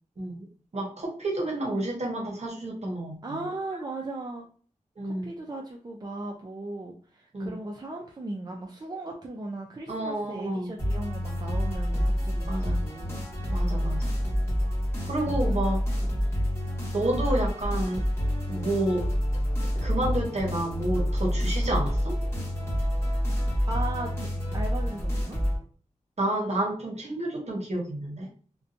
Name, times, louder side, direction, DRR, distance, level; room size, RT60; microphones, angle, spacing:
voice 1, 0.2-0.5 0.7-3.2 5.0-5.3 7.3-7.6 9.9-10.7 12.5-12.8 13.5-14.1 15.0-15.8 16.9-18.0 18.5-19.1 19.7-22.2 26.2-28.3, right 1 dB, 60° right, 0.9 m, -30 dB
voice 2, 3.2-4.5 5.0-13.2 15.0-15.6 16.7-16.8 23.7-24.3 24.5-25.4, right 2 dB, 30° right, 0.4 m, -37 dB
sound 1, 10.8-25.6, equal, 20° left, 1.3 m, -28 dB
2.7 x 2.2 x 2.4 m
wide cardioid pair, 75°, 13 cm